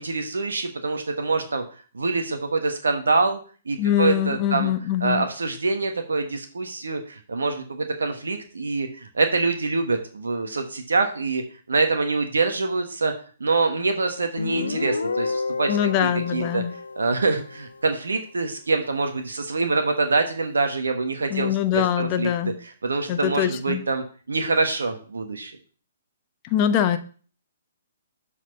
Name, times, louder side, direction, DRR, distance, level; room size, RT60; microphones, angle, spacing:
voice 1, 0.0-1.6 1.9-3.4 3.7-4.7 5.0-11.4 11.7-13.1 13.4-15.8 16.3-16.6 17.0-22.3 22.8-25.5, right 3 dB, 85° right, 6 dB, 1.2 m, -25 dB
voice 2, 3.8-5.3 15.7-16.7 21.3-22.6 23.1-23.8 26.4-27.0, left 10 dB, 35° left, 9 dB, 0.9 m, -23 dB
Guitar, 14.4-17.8, left 4 dB, 90° left, 0.9 m, -30 dB
7.4 x 4.3 x 6.7 m, 0.40 s
hypercardioid pair, 135°, 0 cm